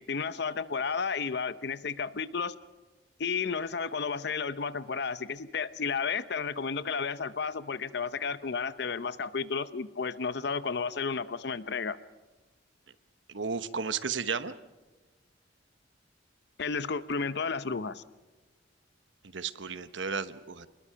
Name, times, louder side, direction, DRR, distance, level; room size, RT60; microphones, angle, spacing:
voice 1, 0.0-2.5 3.2-12.0 16.6-18.0, left 5 dB, 60° left, 14 dB, 0.7 m, -32 dB
voice 2, 13.3-14.5 19.3-20.7, right 5 dB, 75° right, 13 dB, 1.0 m, -33 dB
28.5 x 21.0 x 5.7 m, 1.2 s
head